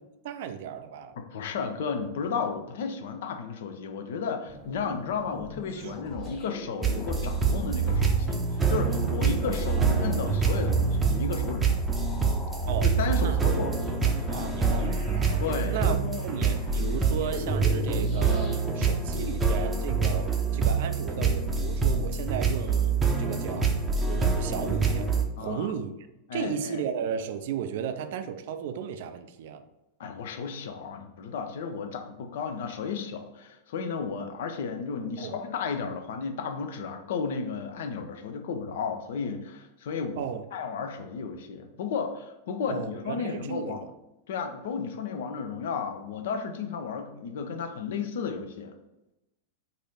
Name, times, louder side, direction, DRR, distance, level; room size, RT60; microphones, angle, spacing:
voice 1, 0.2-1.2 5.7-6.0 9.2-9.8 10.3-10.4 12.7-12.9 13.2-13.4 14.0-15.4 15.7-16.0 16.2-25.1 25.4-25.9 26.3-29.6 35.2-35.4 40.2-40.4 42.7-43.9, right 8 dB, 55° right, 0.3 m, -35 dB
voice 2, 1.2-8.4 8.7-11.8 12.8-13.8 15.4-16.2 25.4-25.7 26.3-26.8 30.0-40.2 40.5-43.8 44.3-48.7, left 5 dB, 55° left, 0.5 m, -33 dB
sound 1, 4.5-18.6, right 5 dB, 35° left, 1.5 m, -33 dB
sound 2, 6.8-25.2, right 4 dB, 15° right, 0.6 m, -26 dB
4.1 x 2.6 x 4.1 m
figure-of-eight pair, 90°, 0 cm